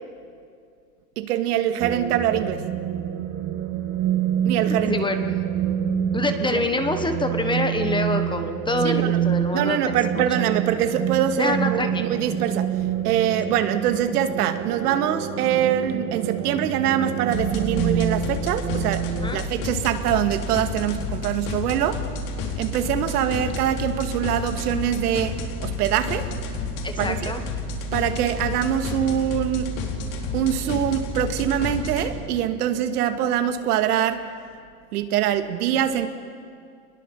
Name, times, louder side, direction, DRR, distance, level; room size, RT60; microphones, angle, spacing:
voice 1, 1.2-2.7 4.4-4.9 6.5-6.6 8.8-9.2 9.5-12.7 13.0-22.1 22.6-26.3 27.0-27.3 27.9-29.8 30.3-34.3 34.9-36.1, right 10 dB, 70° right, 7 dB, 2.1 m, -24 dB
sound 1, 1.8-19.3, right 9 dB, 35° right, 2.0 m, -27 dB
voice 2, 4.9-5.2 6.1-9.8 10.1-10.2 11.4-12.0 19.2-19.4 26.8-27.4, left 2 dB, 10° left, 7 dB, 1.2 m, -26 dB
sound 2, 17.3-32.1, left 3 dB, 60° left, 4.6 m, -30 dB
26.5 x 21.5 x 7.3 m, 2.3 s
supercardioid pair, 140°, 48 cm